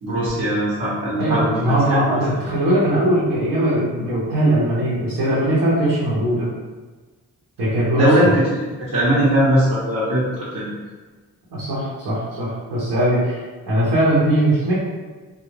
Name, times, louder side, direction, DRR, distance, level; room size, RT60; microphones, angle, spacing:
voice 1, 0.0-2.0 8.0-8.4 8.8-10.7, equal, 55° right, -9 dB, 0.9 m, -20 dB
voice 2, 1.2-6.5 7.6-8.3 11.5-13.4 13.7-14.7, right 1 dB, 80° right, -9 dB, 0.9 m, -20 dB
2.4 x 2.0 x 3.1 m, 1.3 s
supercardioid pair, 50°, 39 cm